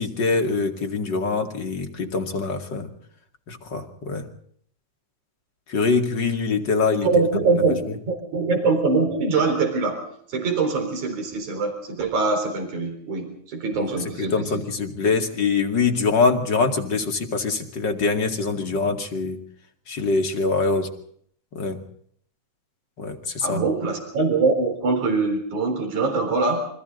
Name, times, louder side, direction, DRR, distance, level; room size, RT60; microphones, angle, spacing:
voice 1, 0.0-2.9 3.5-4.2 5.7-7.1 14.2-19.4 19.9-20.9 21.5-21.8 23.0-23.6, left 4 dB, 40° left, 5 dB, 2.8 m, -24 dB
voice 2, 7.0-7.8 8.1-10.0 10.3-14.6 23.4-26.7, right 4 dB, 90° right, 5 dB, 5.5 m, -23 dB
29.0 x 24.0 x 4.0 m, 0.65 s
omnidirectional pair, 3.3 m